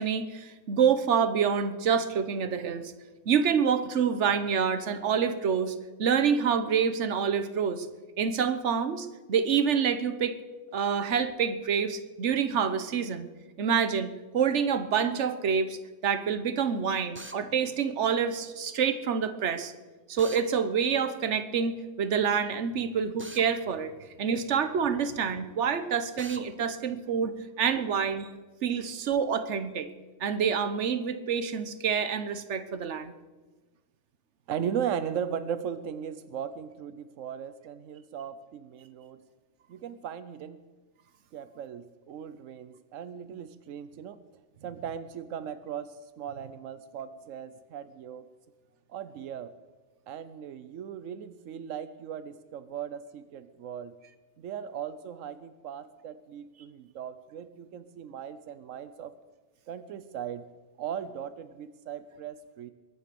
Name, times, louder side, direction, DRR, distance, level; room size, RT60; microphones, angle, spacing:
voice 1, 0.0-2.9 3.3-7.9 8.2-10.4 10.7-13.3 13.6-19.7 20.1-23.9 24.2-28.3 28.6-29.9 30.2-33.1, right 7 dB, 65° right, 11 dB, 1.3 m, -27 dB
Drill, 17.2-17.4 20.2-20.5 23.2-23.5 26.2-26.4, right 2 dB, 10° right, 0.6 m, -42 dB
voice 2, 34.5-39.2 39.7-40.6 41.3-44.2 44.6-48.3 48.9-49.5 50.1-53.9 54.4-59.1 59.7-60.5 60.8-62.7, right 8 dB, 90° right, 12 dB, 1.1 m, -37 dB
22.0 x 9.4 x 6.9 m, 1.2 s
omnidirectional pair, 1.3 m